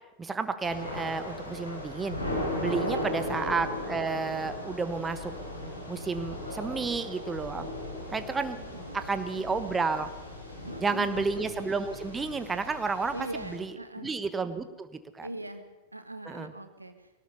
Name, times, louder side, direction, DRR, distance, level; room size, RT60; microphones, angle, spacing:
voice 1, 0.2-2.2 2.6-5.3 5.9-7.7 8.1-10.1 10.8-13.7 14.0-15.3 16.2-16.5, right 4 dB, 15° right, 11 dB, 1.2 m, -31 dB
Thunder / Rain, 0.6-13.6, left 1 dB, 85° left, 5.3 m, -37 dB
voice 2, 2.8-3.4 8.8-9.9 10.6-11.2 13.1-14.1 15.2-15.6 15.9-17.1, right 2 dB, 85° right, 9 dB, 1.7 m, -41 dB
21.0 x 18.0 x 6.9 m, 1.1 s
figure-of-eight pair, 90°, 0 cm